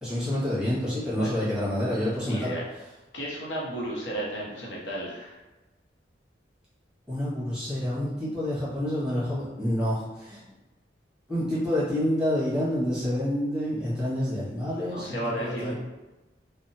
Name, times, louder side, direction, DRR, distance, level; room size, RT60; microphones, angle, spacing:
voice 1, 0.0-2.5 7.1-10.4 11.3-15.7, left 1 dB, 5° right, -10 dB, 1.0 m, -28 dB
voice 2, 2.3-2.6 3.1-5.4 14.9-15.7, right 1 dB, 85° left, -4 dB, 0.6 m, -33 dB
2.7 x 2.0 x 2.6 m, 1.1 s
head